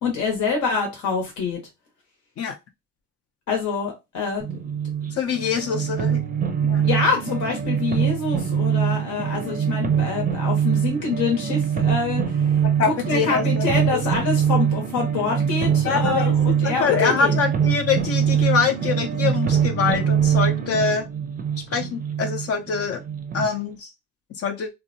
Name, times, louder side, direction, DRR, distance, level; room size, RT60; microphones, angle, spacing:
voice 1, 0.0-1.6 3.5-4.4 6.8-17.4, left 4 dB, 75° left, 0.9 m, -26 dB
sound 1, 4.4-23.5, right 8 dB, 30° right, 0.5 m, -23 dB
voice 2, 5.1-6.2 6.6-6.9 12.8-13.6 13.9-14.0 15.8-16.3 16.6-21.1 21.7-23.0 23.3-23.9 24.4-24.7, left 6 dB, 50° left, 0.5 m, -24 dB
2.6 x 2.1 x 2.6 m
cardioid pair, 90°, 30 cm